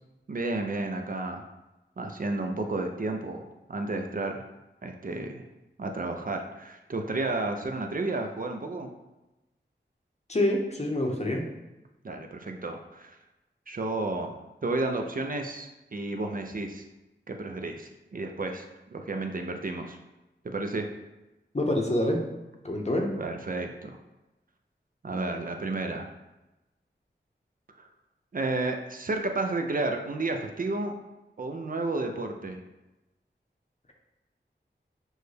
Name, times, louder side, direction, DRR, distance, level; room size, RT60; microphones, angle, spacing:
voice 1, 0.3-1.4 2.0-4.4 4.8-5.4 5.8-8.9 12.0-13.2 13.7-14.4 14.6-16.8 17.3-18.7 18.9-20.0 20.5-20.9 23.2-24.0 25.0-26.1 27.8-27.9 28.3-31.0 31.4-32.6, right 2 dB, 45° right, 4 dB, 0.4 m, -32 dB
voice 2, 10.3-11.4 21.5-22.2 22.6-23.1, left 1 dB, 35° left, 1 dB, 0.7 m, -26 dB
6.2 x 2.2 x 3.3 m, 1.0 s
wide cardioid pair, 65°, 19 cm